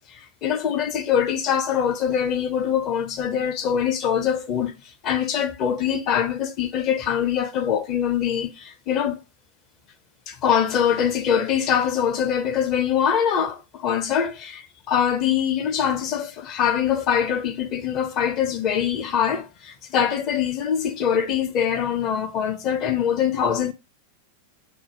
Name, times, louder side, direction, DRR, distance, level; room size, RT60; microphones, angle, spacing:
voice 1, 0.4-4.7 5.0-9.2 10.3-23.7, left 8 dB, 40° left, 0.7 m, -23 dB
5.8 x 2.1 x 2.9 m
figure-of-eight pair, 90°, 0 cm